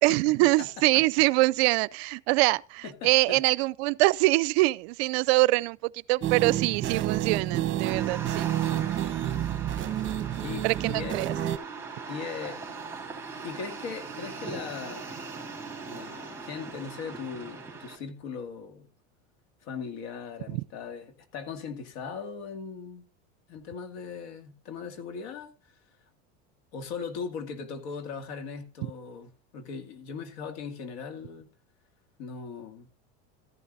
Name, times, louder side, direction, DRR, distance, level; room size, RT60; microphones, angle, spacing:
voice 1, 0.0-8.5 10.6-11.3 20.5-20.6, right 22 dB, 70° right, 0.5 m, -24 dB
voice 2, 2.8-3.4 10.4-11.2 12.1-12.6 13.4-15.1 15.9-18.9 19.6-23.0 23.5-25.5 26.7-31.5 32.2-32.9, left 5 dB, 70° left, 2.3 m, -39 dB
sound 1, 6.2-11.6, right 12 dB, 35° right, 1.0 m, -29 dB
sound 2, 7.8-18.0, right 4 dB, 5° right, 3.2 m, -40 dB
13.5 x 11.0 x 2.6 m
supercardioid pair, 105°, 34 cm